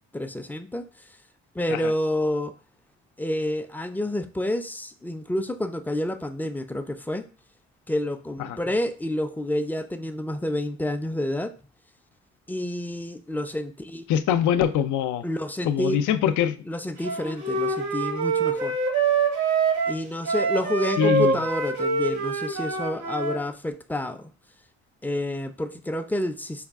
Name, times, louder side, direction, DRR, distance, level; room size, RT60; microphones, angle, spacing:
voice 1, 0.1-0.9 1.6-2.5 3.2-7.2 7.9-11.5 12.5-14.0 15.2-16.0 16.7-18.8 19.9-24.2 25.0-26.7, left 1 dB, 5° left, 0.4 m, -29 dB
voice 2, 14.1-15.2 15.6-16.6 21.0-21.4, left 9 dB, 75° left, 0.5 m, -23 dB
Wind instrument woodwind instrument, 17.0-23.4, right 4 dB, 75° right, 1.2 m, -25 dB
4.9 x 2.3 x 3.5 m
cardioid pair, 90°, 30 cm